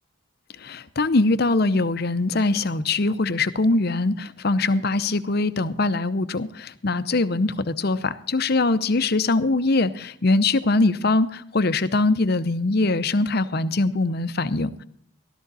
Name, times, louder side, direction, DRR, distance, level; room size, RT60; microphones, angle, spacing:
voice 1, 0.6-14.8, left 2 dB, 50° left, 13 dB, 0.7 m, -22 dB
14.0 x 13.0 x 4.1 m, 0.65 s
head